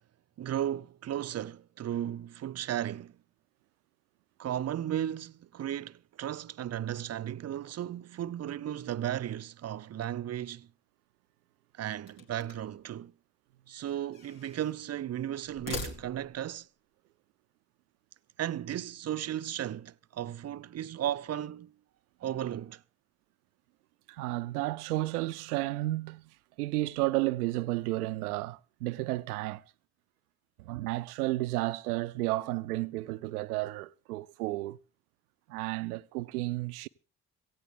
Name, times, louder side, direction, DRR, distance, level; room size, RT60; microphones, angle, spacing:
voice 1, 0.4-3.2 4.4-10.7 11.8-13.1 13.7-16.7 18.4-21.7 22.2-22.8, right 11 dB, 35° right, 0.6 m, -35 dB
sound 1, 12.0-12.8 13.7-14.8 15.4-16.5, left 3 dB, 80° left, 2.4 m, -43 dB
voice 2, 24.1-29.6 30.6-34.8 35.5-36.9, right 19 dB, 75° right, 0.7 m, -32 dB
17.0 x 16.0 x 3.7 m
figure-of-eight pair, 45°, 45 cm